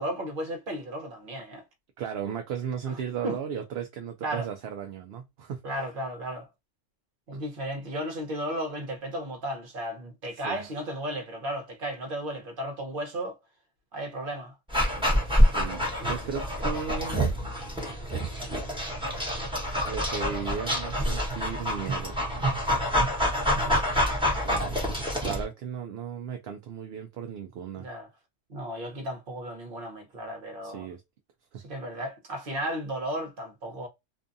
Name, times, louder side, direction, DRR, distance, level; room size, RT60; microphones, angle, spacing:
voice 1, 0.0-1.6 2.9-3.0 3.2-3.4 4.2-4.5 5.6-6.5 7.3-13.4 13.9-14.5 23.4-23.8 27.8-28.1 28.5-30.9 31.6-33.9, right 1 dB, 50° right, 1.0 m, -34 dB
voice 2, 2.0-5.6 7.3-7.4 10.3-10.6 15.2-17.3 19.9-22.2 24.4-24.8 25.2-27.9 30.6-31.0 31.5-31.6, right 7 dB, 65° right, 0.7 m, -36 dB
Dog, 14.7-25.4, equal, 5° right, 1.0 m, -26 dB
2.6 x 2.3 x 2.5 m
omnidirectional pair, 1.3 m